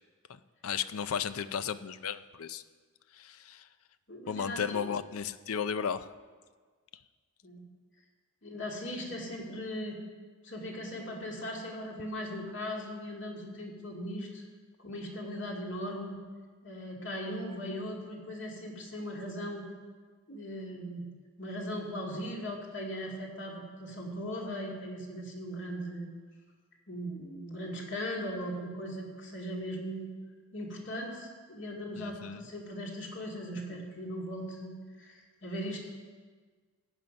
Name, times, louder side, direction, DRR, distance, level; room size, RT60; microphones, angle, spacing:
voice 1, 0.3-2.6 3.1-3.7 4.3-6.1 32.0-32.4, left 7 dB, 85° left, 13 dB, 0.5 m, -35 dB
voice 2, 4.1-4.8 7.4-7.6 8.4-10.0 10.4-14.4 14.8-16.2 16.6-19.7 20.3-21.1 21.4-26.1 26.9-30.1 30.5-34.7 35.0-35.8, equal, 55° left, -1 dB, 2.4 m, -38 dB
15.0 x 9.3 x 5.3 m, 1.5 s
head